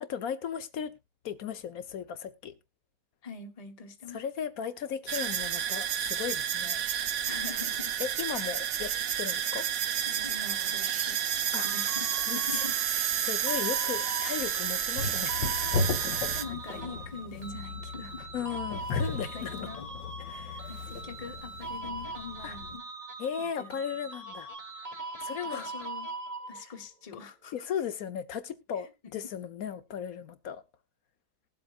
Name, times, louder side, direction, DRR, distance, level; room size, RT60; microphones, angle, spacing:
voice 1, 0.1-0.9 1.2-2.5 4.1-6.9 8.0-8.9 9.2-9.6 11.5-11.7 12.2-12.7 13.2-15.5 16.1-16.4 18.3-19.7 20.2-20.7 22.4-22.6 23.2-24.5 25.2-25.7 27.5-30.6, left 8 dB, 60° left, 1.1 m, -36 dB
voice 2, 3.2-4.2 7.2-8.0 8.4-8.5 10.0-11.2 11.6-12.8 13.5-13.6 16.3-18.4 19.3-19.9 20.7-22.8 23.4-23.7 25.3-26.1 26.5-27.5, left 4 dB, 25° left, 1.0 m, -44 dB
sound 1, 5.1-16.4, right 9 dB, 60° right, 1.1 m, -30 dB
sound 2, 11.6-26.8, right 3 dB, 25° right, 1.4 m, -41 dB
sound 3, 15.0-22.8, left 4 dB, 90° left, 1.7 m, -36 dB
20.0 x 7.8 x 2.4 m
omnidirectional pair, 1.8 m